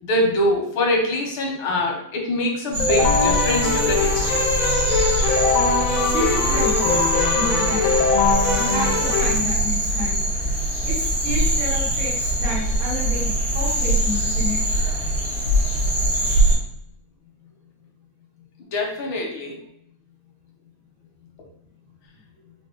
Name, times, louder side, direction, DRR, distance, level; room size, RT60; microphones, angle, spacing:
voice 1, 0.0-4.4 18.7-19.6, left 1 dB, 85° left, 1 dB, 1.8 m, -24 dB
sound 1, 2.7-16.6, right 1 dB, 70° right, 2.5 m, -22 dB
Keyboard (musical), 2.8-9.3, left 5 dB, 65° left, 0.8 m, -22 dB
voice 2, 6.0-8.0 8.5-10.3 10.8-13.3 13.5-14.6, equal, 90° right, -7 dB, 2.7 m, -30 dB
5.3 x 2.6 x 3.8 m, 0.71 s
omnidirectional pair, 2.2 m